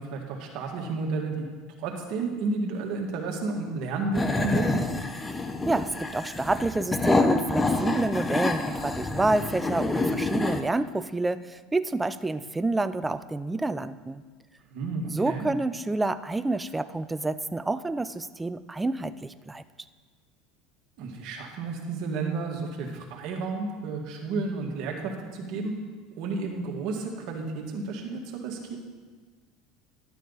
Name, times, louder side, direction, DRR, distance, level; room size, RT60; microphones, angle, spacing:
voice 1, 0.0-1.5 1.8-5.0 14.7-15.5 21.0-25.7 26.1-28.8, right 3 dB, 60° right, 1 dB, 1.9 m, -32 dB
sound 1, 4.1-10.6, left 3 dB, 15° left, 0.7 m, -27 dB
voice 2, 5.3-14.2 15.1-19.6, right 2 dB, 10° right, 12 dB, 0.4 m, -28 dB
12.0 x 9.1 x 4.0 m, 1.4 s
supercardioid pair, 115°, 0 cm